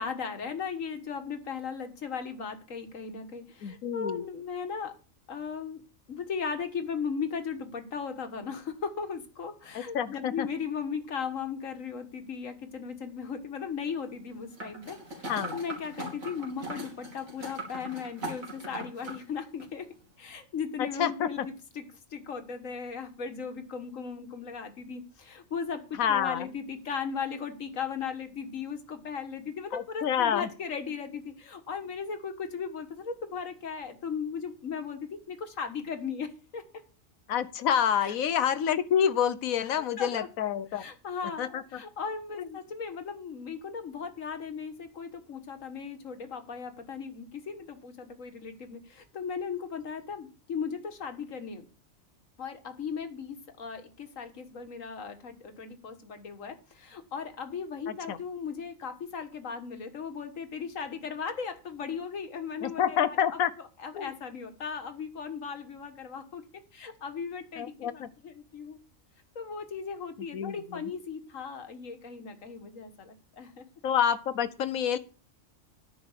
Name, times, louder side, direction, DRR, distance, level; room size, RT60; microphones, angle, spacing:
voice 1, 0.0-4.9 5.3-5.8 6.1-19.9 20.2-21.8 22.1-36.6 38.0-38.1 40.0-40.3 40.8-51.7 52.4-63.4 63.8-66.4 66.7-68.8 69.4-73.6, left 6 dB, 70° left, 8 dB, 1.8 m, -37 dB
voice 2, 3.6-4.2 9.7-10.5 15.3-15.6 20.8-21.5 25.9-26.5 29.7-30.5 37.3-40.8 41.4-41.8 42.4-42.5 57.9-58.2 62.6-63.5 63.9-64.1 67.6-68.1 70.3-70.8 73.8-75.0, left 8 dB, 90° left, 14 dB, 1.3 m, -28 dB
sound 1, 14.6-19.2 19.6-19.7, right 1 dB, 85° right, 3.4 m, -40 dB
10.0 x 6.0 x 7.2 m, 0.34 s
omnidirectional pair, 1.4 m